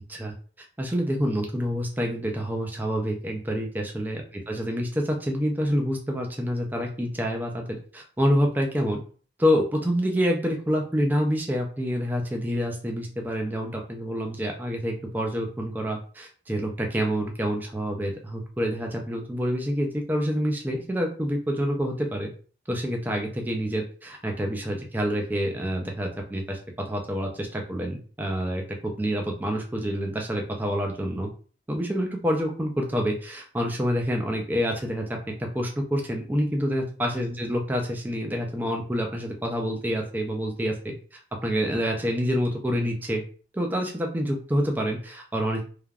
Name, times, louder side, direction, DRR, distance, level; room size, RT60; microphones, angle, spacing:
voice 1, 0.8-4.2 4.5-9.0 9.4-22.3 22.7-26.6 26.9-28.6 29.0-31.3 31.7-43.2 43.5-45.6, equal, 10° right, 1 dB, 0.4 m, -27 dB
3.3 x 2.2 x 2.4 m, 0.41 s
head